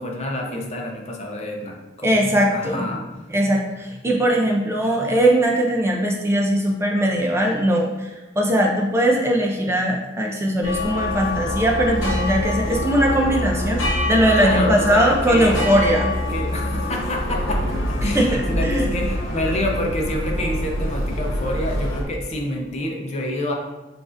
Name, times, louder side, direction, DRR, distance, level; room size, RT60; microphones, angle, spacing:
voice 1, 0.0-3.0 14.4-15.6 16.3-23.5, left 1 dB, 35° left, 0 dB, 0.6 m, -27 dB
voice 2, 2.0-2.8 3.3-8.1 8.4-13.8 14.1-16.1 18.0-18.9, right 1 dB, 15° right, 0 dB, 0.4 m, -20 dB
sound 1, 10.6-22.0, left 1 dB, 75° left, 1.1 m, -25 dB
7.0 x 2.5 x 2.5 m, 1.1 s
head